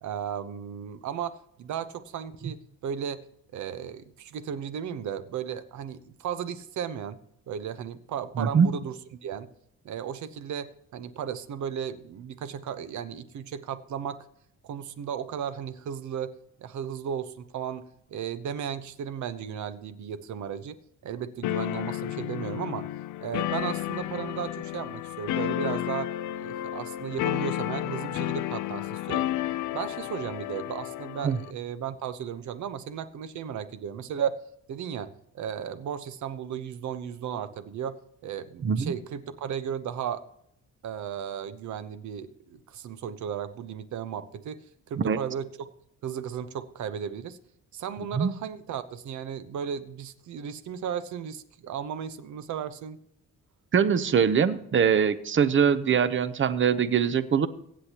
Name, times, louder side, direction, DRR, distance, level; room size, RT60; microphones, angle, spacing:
voice 1, 0.0-3.3 3.5-7.2 7.5-9.5 9.8-14.3 14.6-16.3 16.6-20.8 21.0-22.9 23.2-26.1 26.4-29.3 29.7-34.3 34.7-40.2 40.8-44.6 44.9-45.5 46.0-47.4 47.7-53.0, right 8 dB, 70° right, 12 dB, 1.0 m, -35 dB
voice 2, 8.4-8.7 31.2-31.4 38.6-38.9 45.0-45.2 48.1-48.3 53.7-57.5, right 7 dB, 40° right, 13 dB, 0.8 m, -23 dB
sound 1, 21.4-31.5, left 14 dB, 80° left, 0.5 m, -32 dB
23.5 x 8.3 x 3.0 m, 0.75 s
cardioid pair, 90°, 30 cm